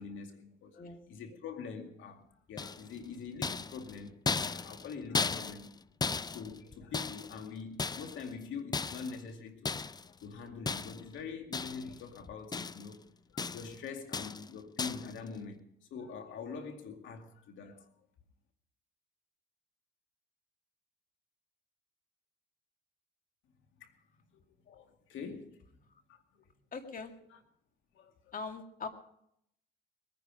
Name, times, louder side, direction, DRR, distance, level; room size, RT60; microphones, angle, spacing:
voice 1, 0.0-5.7 6.1-9.8 10.0-13.0 13.3-17.9 23.8-23.9 24.3-25.6 26.1-26.4 27.3-27.4 27.9-28.3, left 5 dB, 80° left, 2.3 m, -45 dB
sound 1, 2.6-3.0 3.4-7.4 7.8-8.3 8.7-9.2 9.6-10.1 10.7-11.1 11.5-12.0 12.3-13.0 13.4-13.8 14.1-14.5 14.8-15.1, left 4 dB, 20° left, 0.4 m, -36 dB
voice 2, 26.7-27.1 28.3-28.9, left 4 dB, 45° left, 2.2 m, -41 dB
21.5 x 9.8 x 5.0 m
cardioid pair, 90°, 20 cm